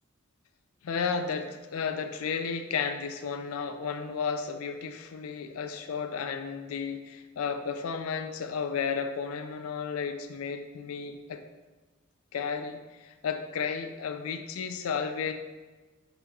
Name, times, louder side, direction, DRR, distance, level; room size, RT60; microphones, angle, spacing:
voice 1, 0.8-11.4 12.3-15.3, left 6 dB, 80° left, 7 dB, 0.4 m, -33 dB
6.6 x 2.3 x 3.0 m, 1.3 s
head